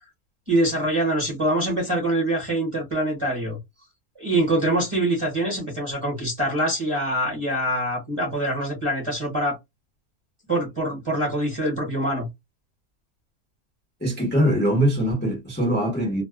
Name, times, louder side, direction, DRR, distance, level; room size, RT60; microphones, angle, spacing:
voice 1, 0.5-3.6 4.2-9.6 10.5-12.3, right 1 dB, 25° right, 0.9 m, -24 dB
voice 2, 14.0-16.2, equal, 10° left, 0.7 m, -22 dB
2.7 x 2.1 x 2.3 m
omnidirectional pair, 1.6 m